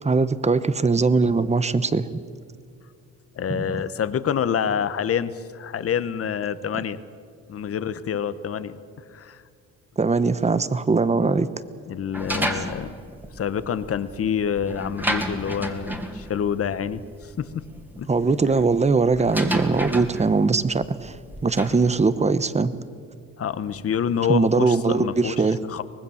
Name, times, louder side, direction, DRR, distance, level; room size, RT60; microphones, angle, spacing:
voice 1, 0.0-2.2 3.5-3.6 10.0-11.5 18.1-21.2 21.4-22.8 24.3-25.6, right 4 dB, 20° right, 14 dB, 1.0 m, -21 dB
voice 2, 3.3-7.0 7.5-8.8 9.1-9.4 11.1-11.3 11.9-12.9 13.3-17.6 18.0-18.1 23.4-25.3 25.7-25.8, left 8 dB, 50° left, 14 dB, 1.1 m, -27 dB
sound 1, 12.1-21.9, equal, 5° right, 2.4 m, -32 dB
24.5 x 19.5 x 7.2 m, 2.2 s
cardioid pair, 90°, 30 cm